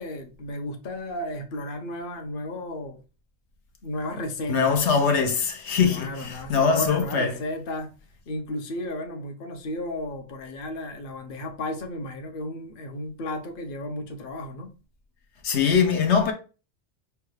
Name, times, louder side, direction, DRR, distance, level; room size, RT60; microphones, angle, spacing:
voice 1, 0.0-3.0 3.8-4.7 5.9-7.9 8.3-14.7, left 1 dB, 55° left, 0.9 m, -33 dB
voice 2, 4.5-7.4 15.4-16.3, left 6 dB, 80° left, 1.1 m, -22 dB
5.5 x 2.3 x 3.1 m
omnidirectional pair, 1.1 m